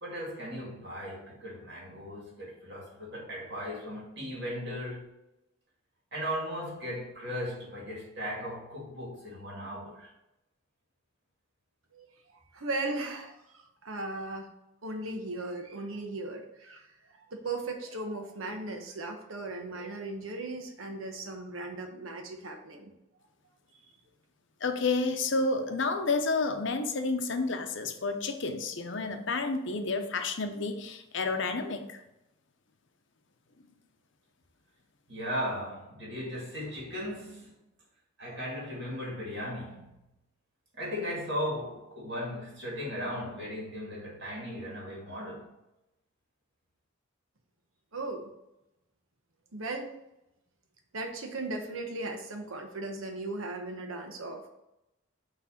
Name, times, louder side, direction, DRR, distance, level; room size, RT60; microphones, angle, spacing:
voice 1, 0.0-5.1 6.1-10.1 35.1-37.5 38.2-39.9 40.7-45.5, equal, 55° right, 2.5 m, -37 dB
voice 2, 12.5-14.5 14.8-22.9 23.7-23.8 47.9-48.3 49.5-49.9 50.9-54.5, right 2 dB, 85° right, 1.1 m, -37 dB
voice 3, 24.6-32.0, left 3 dB, 60° left, 0.7 m, -30 dB
6.1 x 3.2 x 5.7 m
head